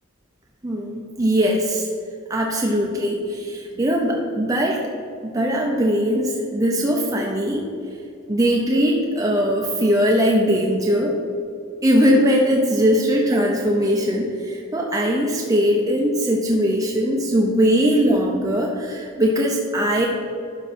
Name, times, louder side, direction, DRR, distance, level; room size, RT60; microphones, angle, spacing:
voice 1, 0.6-1.9 2.3-4.8 5.2-7.6 8.3-11.1 11.8-20.1, equal, 15° right, -1 dB, 0.7 m, -20 dB
12.0 x 4.9 x 4.3 m, 2.6 s
head